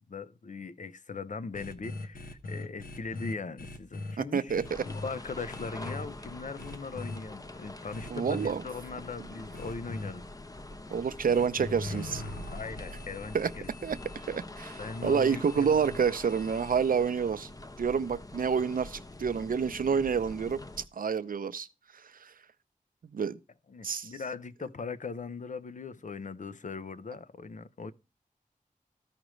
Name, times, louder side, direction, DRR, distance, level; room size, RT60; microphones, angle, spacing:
voice 1, 0.1-4.5 4.8-10.3 12.5-13.7 14.8-16.0 23.7-27.9, left 4 dB, 60° left, 0.7 m, -40 dB
sound 1, 1.5-4.1 4.5-5.1 5.5-6.0 6.6-7.2 7.9-8.5 9.5-10.1 11.3-17.1, left 2 dB, 90° left, 1.1 m, -41 dB
voice 2, 4.2-4.8 8.1-8.6 10.9-12.2 13.3-13.5 13.8-17.5 17.8-20.6 20.9-21.7 21.9-22.3 23.1-23.4 23.8-24.1, right 6 dB, 80° right, 0.6 m, -28 dB
sound 2, 4.6-20.9, left 2 dB, 25° left, 0.6 m, -45 dB
14.5 x 5.0 x 3.1 m
wide cardioid pair, 90°, 14 cm